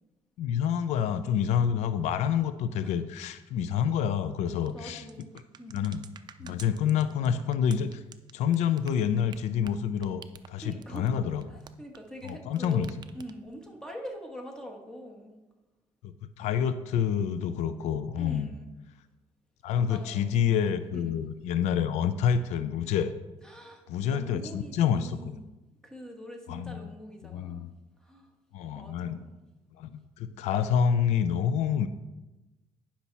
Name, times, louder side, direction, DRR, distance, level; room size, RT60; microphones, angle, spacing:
voice 1, 0.4-5.0 5.7-6.0 6.4-8.0 8.3-10.2 10.5-11.4 12.2-12.9 16.0-18.5 19.6-23.1 23.9-25.3 26.5-26.9 27.2-27.7 28.5-29.2 29.8-31.9, left 8 dB, 90° left, 12 dB, 0.4 m, -28 dB
sound 1, 4.6-12.3 12.6-13.6, right 7 dB, 40° right, 0.5 m, -50 dB
voice 2, 4.7-5.8 6.4-6.6 10.6-11.1 11.5-15.3 18.1-18.7 19.8-20.5 20.9-21.2 23.4-23.8 24.1-25.4 25.8-27.7 28.0-28.3 28.7-29.3, equal, 5° left, 2 dB, 1.6 m, -44 dB
10.0 x 5.9 x 4.1 m, 1.1 s
cardioid pair, 105°, 11 cm